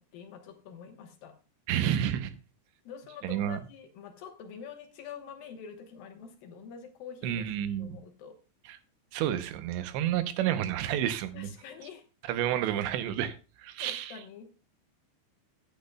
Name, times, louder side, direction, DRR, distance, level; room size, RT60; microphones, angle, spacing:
voice 1, 0.0-1.4 2.8-7.5 7.8-8.4 11.3-12.1 13.8-14.5, left 7 dB, 70° left, 2.3 m, -46 dB
voice 2, 1.7-2.3 3.2-3.6 7.2-8.0 9.1-11.5 12.3-14.2, right 11 dB, 80° right, 2.9 m, -30 dB
15.0 x 10.5 x 2.3 m
omnidirectional pair, 5.4 m